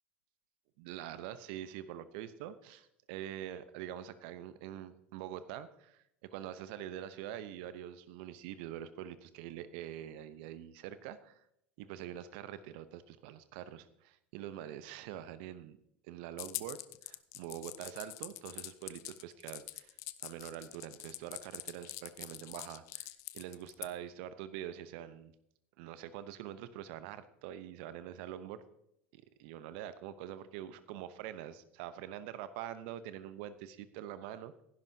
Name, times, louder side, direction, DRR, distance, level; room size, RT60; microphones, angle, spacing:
voice 1, 0.8-11.4 11.8-15.8 16.1-20.0 20.2-25.3 25.8-28.6 29.1-34.6, right 11 dB, 60° right, 13 dB, 0.8 m, -45 dB
sound 1, 16.4-23.9, left 18 dB, 55° left, 0.7 m, -44 dB
16.0 x 10.5 x 2.8 m, 0.77 s
hypercardioid pair, 80°, 6 cm